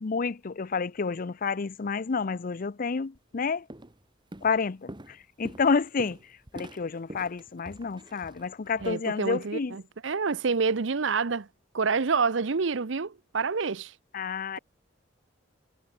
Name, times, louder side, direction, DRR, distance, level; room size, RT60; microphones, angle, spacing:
voice 1, 0.0-3.6 4.4-6.2 6.5-9.8 14.1-14.6, left 5 dB, 45° left, 0.5 m, -29 dB
Walk footsteps, 3.1-3.4 3.7-4.0 4.3-8.9, right 1 dB, 25° right, 1.6 m, -45 dB
voice 2, 8.8-11.5 11.7-13.9, right 5 dB, 70° right, 0.8 m, -27 dB
head